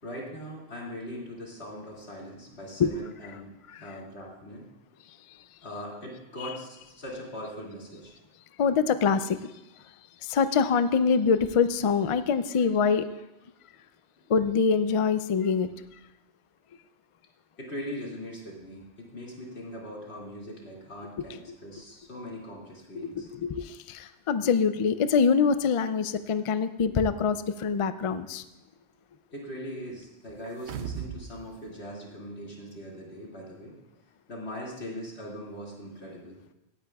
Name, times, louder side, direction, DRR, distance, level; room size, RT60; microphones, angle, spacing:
voice 1, 0.0-3.5 3.8-4.7 5.6-8.1 17.6-23.3 29.3-33.7 34.3-36.4, equal, 75° left, -3 dB, 2.6 m, -40 dB
voice 2, 8.6-9.4 10.2-13.1 14.3-15.7 22.9-28.4, left 5 dB, 55° left, 12 dB, 0.3 m, -24 dB
sound 1, 30.4-31.3 31.7-31.8, right 8 dB, 85° right, 0.9 m, -36 dB
17.0 x 10.0 x 2.3 m, 0.95 s
omnidirectional pair, 1.1 m